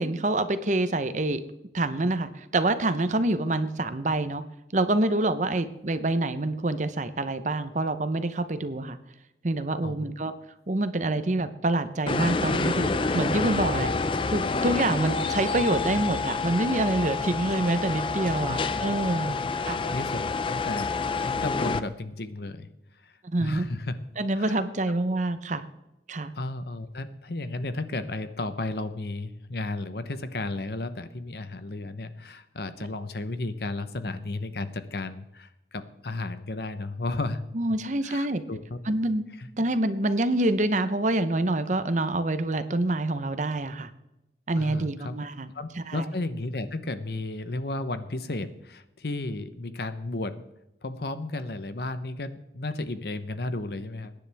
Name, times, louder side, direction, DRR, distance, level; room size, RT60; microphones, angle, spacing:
voice 1, 0.0-1.4 1.7-4.4 4.7-9.0 9.4-10.3 10.7-13.9 14.3-19.8 23.2-23.7 24.2-25.6 26.1-26.3 37.5-38.4 38.9-39.2 39.6-43.9 44.5-46.0, right 2 dB, 40° right, 11 dB, 0.8 m, -26 dB
voice 2, 9.8-10.1 13.7-13.9 18.4-18.9 19.2-22.7 23.0-23.1 23.4-24.0 24.3-24.6 26.3-37.4 38.0-38.8 39.4-39.5 44.6-45.2 45.5-50.4 50.8-54.1, left 2 dB, 60° left, 11 dB, 0.9 m, -34 dB
sound 1, 12.1-21.8, left 4 dB, 30° left, 0.5 m, -28 dB
22.0 x 10.0 x 3.5 m, 0.90 s
head